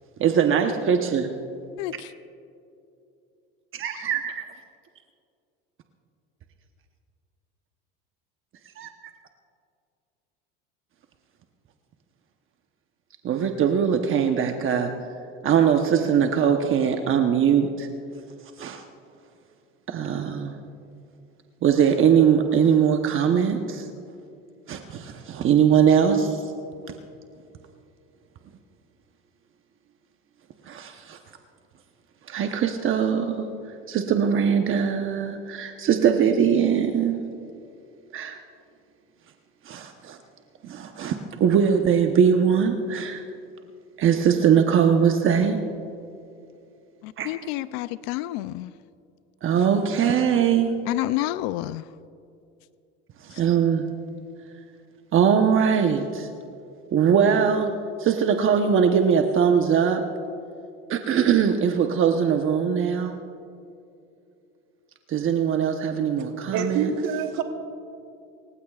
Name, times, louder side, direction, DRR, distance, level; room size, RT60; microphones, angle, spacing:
voice 1, 0.2-1.3 3.7-4.4 8.8-8.9 13.2-14.9 15.4-17.9 18.6-18.8 19.9-20.5 21.6-23.9 24.7-26.4 30.7-31.2 32.3-33.5 33.9-37.2 38.1-38.4 39.7-40.2 40.6-43.2 44.0-45.6 47.2-47.3 49.4-50.7 53.2-53.9 55.1-56.3 56.9-57.7 58.0-60.0 60.9-63.2 65.1-66.9, right 7 dB, 45° right, 1.0 m, -21 dB
voice 2, 1.8-2.1 47.0-48.7 50.9-51.8, left 16 dB, 75° left, 0.5 m, -29 dB
voice 3, 66.5-67.4, right 6 dB, 80° right, 1.5 m, -26 dB
28.0 x 15.5 x 2.4 m
supercardioid pair, 105°, 30 cm